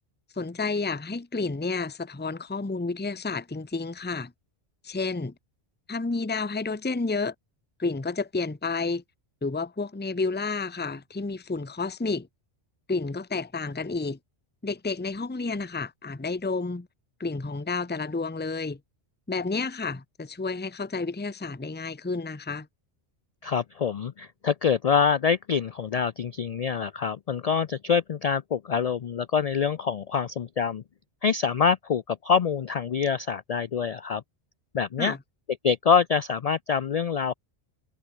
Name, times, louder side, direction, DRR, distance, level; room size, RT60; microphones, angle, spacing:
voice 1, 0.3-4.3 4.8-5.3 5.9-7.3 7.8-9.0 9.4-12.3 12.9-14.2 14.6-16.9 17.2-18.8 19.3-22.7 35.0-35.2, left 3 dB, 10° left, 0.8 m, -30 dB
voice 2, 23.4-30.8 31.2-34.2 34.7-35.2 35.6-37.3, left 6 dB, 50° left, 0.5 m, -25 dB
omnidirectional pair, 1.1 m